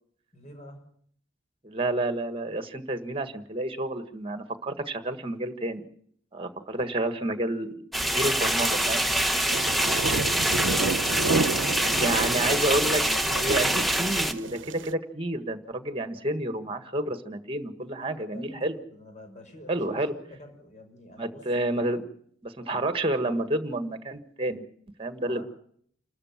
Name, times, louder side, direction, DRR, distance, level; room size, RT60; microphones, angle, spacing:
voice 1, 0.3-0.8 17.9-21.4 25.2-25.4, equal, 40° left, 5 dB, 6.2 m, -48 dB
voice 2, 1.6-5.9 6.3-9.1 11.9-13.0 13.3-18.8 19.7-20.1 21.2-22.0 22.4-24.6 25.0-25.4, right 1 dB, 30° right, 9 dB, 1.6 m, -29 dB
sound 1, 7.9-14.3, right 1 dB, ahead, 1.2 m, -25 dB
sound 2, 8.6-14.9, right 3 dB, 70° right, 0.8 m, -31 dB
28.5 x 13.5 x 7.4 m, 0.64 s
head